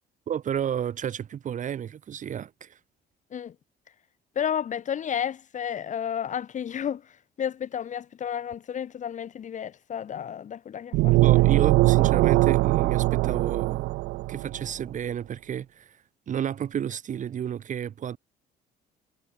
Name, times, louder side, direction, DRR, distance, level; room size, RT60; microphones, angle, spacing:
voice 1, 0.3-2.8 11.2-13.9 14.3-16.0 16.3-18.2, right 9 dB, 50° right, 2.8 m, -31 dB
voice 2, 4.4-7.0 7.4-11.4, left 8 dB, 45° left, 2.8 m, -32 dB
sound 1, 10.9-14.6, right 21 dB, 80° right, 0.4 m, -21 dB
cardioid pair, 110°, 17 cm